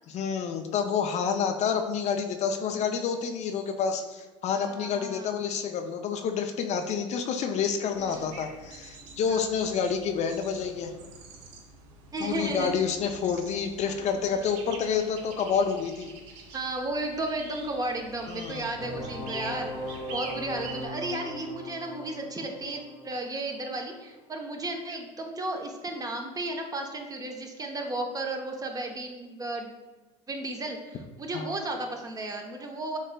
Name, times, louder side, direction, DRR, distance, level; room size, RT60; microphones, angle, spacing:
voice 1, 0.1-10.9 12.2-16.1 18.3-18.7 31.3-31.5, left 6 dB, 45° left, 5 dB, 0.5 m, -29 dB
voice 2, 4.5-5.3 8.0-8.4 9.3-9.4 12.1-12.8 13.9-14.4 16.5-19.7 20.1-29.7 30.3-33.0, right 2 dB, 20° right, 3 dB, 0.8 m, -34 dB
sound 1, 7.9-20.9, right 3 dB, 70° right, 0.9 m, -46 dB
sound 2, 18.8-24.4, left 1 dB, 75° left, 1.1 m, -39 dB
6.5 x 3.2 x 2.2 m, 1.2 s
hypercardioid pair, 75°, 16 cm